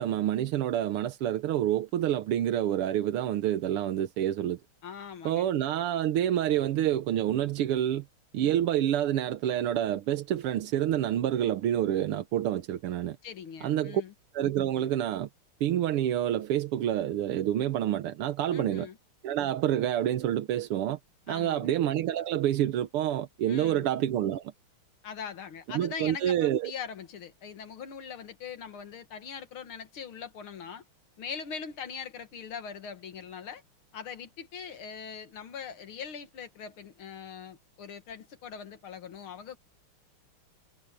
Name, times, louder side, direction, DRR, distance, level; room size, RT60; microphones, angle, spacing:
voice 1, 0.0-4.6 5.3-8.1 8.3-13.2 13.6-14.0 14.3-15.3 15.6-18.9 19.2-21.0 21.3-24.5 25.7-26.7, right 11 dB, 85° right, 1.8 m, -28 dB
voice 2, 4.8-5.5 13.2-14.1 18.5-19.0 21.3-21.7 23.5-23.9 25.0-30.8 31.2-33.6 33.9-39.6, left 6 dB, 70° left, 2.4 m, -41 dB
omnidirectional pair, 2.4 m